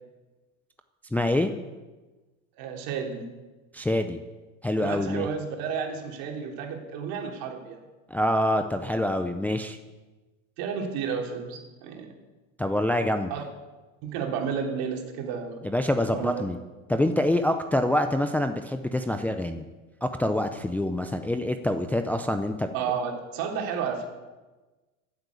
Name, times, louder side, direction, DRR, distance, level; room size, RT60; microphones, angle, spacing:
voice 1, 1.1-1.5 3.7-4.2 4.6-5.3 8.1-9.8 12.6-13.3 15.6-16.6 16.9-19.7 20.0-22.7, left 1 dB, 5° left, 6 dB, 0.6 m, -26 dB
voice 2, 2.6-3.3 4.8-7.8 10.6-12.1 13.3-13.4 14.0-15.7 16.1-16.4 22.7-24.0, right 6 dB, 55° right, 2 dB, 3.2 m, -32 dB
14.0 x 8.1 x 8.4 m, 1.2 s
supercardioid pair, 120°, 41 cm